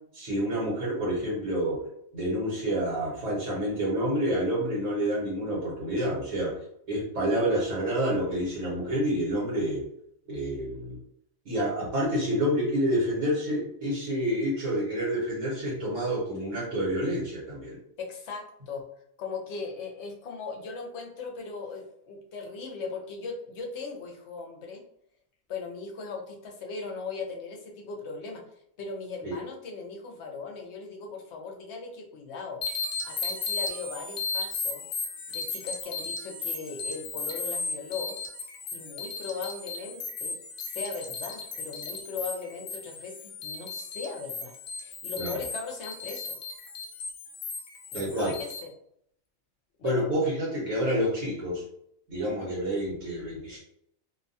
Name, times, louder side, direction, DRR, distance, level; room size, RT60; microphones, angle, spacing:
voice 1, 0.1-1.8 2.1-6.6 6.9-9.8 10.3-11.0 11.4-17.8 29.2-29.4 45.2-45.4 47.9-48.3 49.8-51.6 52.1-53.6, equal, 65° right, -5 dB, 1.3 m, -28 dB
voice 2, 18.0-18.8 19.2-24.8 25.5-28.4 28.8-32.6 33.0-34.8 35.3-38.2 38.7-40.4 40.6-44.5 44.8-46.4 47.9-48.7 49.8-50.1 52.2-52.6, left 4 dB, 65° left, 1 dB, 0.8 m, -38 dB
sound 1, 32.6-48.6, left 4 dB, 85° left, 0.4 m, -36 dB
2.7 x 2.2 x 2.6 m, 0.71 s
omnidirectional pair, 1.4 m